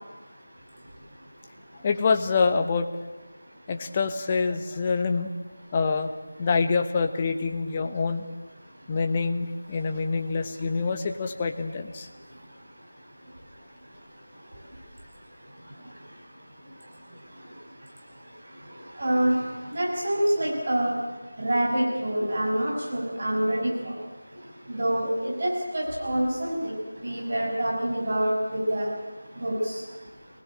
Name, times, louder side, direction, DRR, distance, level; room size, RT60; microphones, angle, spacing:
voice 1, 1.8-2.9 3.7-5.3 5.7-6.1 6.4-8.2 8.9-12.1, left 4 dB, 20° left, 6 dB, 1.2 m, -26 dB
voice 2, 19.0-19.4 19.7-20.9 21.4-23.9 24.7-26.7 27.0-28.9 29.4-29.8, right 1 dB, 40° right, -2 dB, 6.5 m, -26 dB
24.5 x 19.5 x 8.7 m, 1.3 s
figure-of-eight pair, 165°, 0 cm